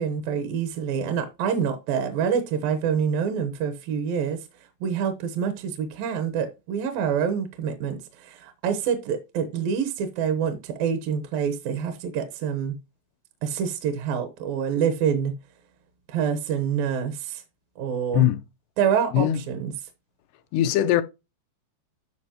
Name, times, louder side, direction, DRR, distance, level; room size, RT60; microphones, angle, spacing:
voice 1, 0.0-4.4 4.8-12.8 13.4-15.3 16.1-17.4 17.8-18.3 18.8-19.7, right 7 dB, 70° right, 2.4 m, -26 dB
voice 2, 20.5-21.0, left 12 dB, 85° left, 2.7 m, -20 dB
13.0 x 5.4 x 2.9 m
omnidirectional pair, 4.9 m